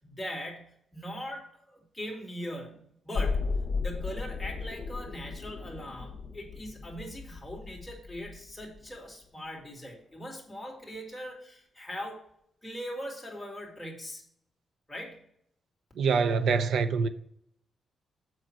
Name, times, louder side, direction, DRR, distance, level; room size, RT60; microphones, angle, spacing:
voice 1, 0.0-3.5 3.8-12.2 12.6-14.2 14.9-15.2, equal, 5° left, 2.4 m, -40 dB
sound 1, 3.1-9.1 9.4-9.5, left 4 dB, 45° left, 1.6 m, -35 dB
voice 2, 16.0-17.1, right 5 dB, 75° right, 0.7 m, -25 dB
7.5 x 6.0 x 4.5 m
cardioid pair, 125°, 0 cm